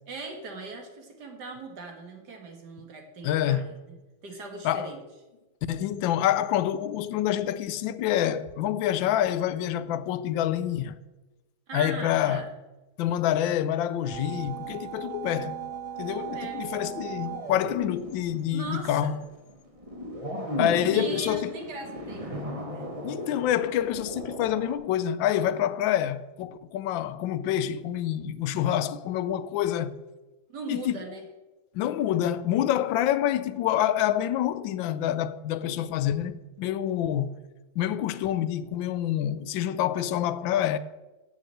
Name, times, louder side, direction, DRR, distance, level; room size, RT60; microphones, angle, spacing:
voice 1, 0.1-4.0 4.2-5.0 11.7-12.5 16.1-16.6 18.5-19.1 20.9-22.8 30.5-31.2, right 4 dB, 60° right, 2.4 m, -39 dB
voice 2, 3.2-3.7 4.6-4.9 5.7-11.0 11.7-12.5 13.0-15.6 16.0-19.2 20.6-21.6 23.0-30.0 30.7-31.0 31.7-37.4 37.8-40.8, left 11 dB, 80° left, 1.3 m, -27 dB
sound 1, 14.0-24.7, right 2 dB, 20° right, 1.2 m, -36 dB
8.1 x 7.2 x 7.7 m
omnidirectional pair, 2.1 m